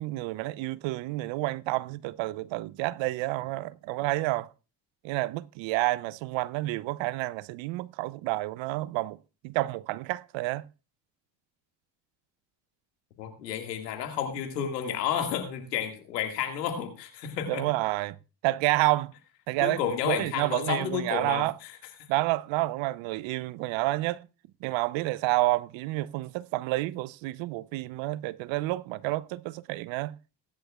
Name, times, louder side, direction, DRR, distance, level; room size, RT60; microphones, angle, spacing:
voice 1, 0.0-4.5 5.0-9.2 9.4-10.7 17.5-18.2 18.4-19.1 19.5-19.8 20.1-21.5 22.1-24.3 24.6-30.1, right 19 dB, 70° right, 0.7 m, -29 dB
voice 2, 13.2-17.7 19.6-21.5, left 9 dB, 90° left, 2.1 m, -31 dB
19.5 x 10.5 x 2.4 m
hypercardioid pair, 50°, 48 cm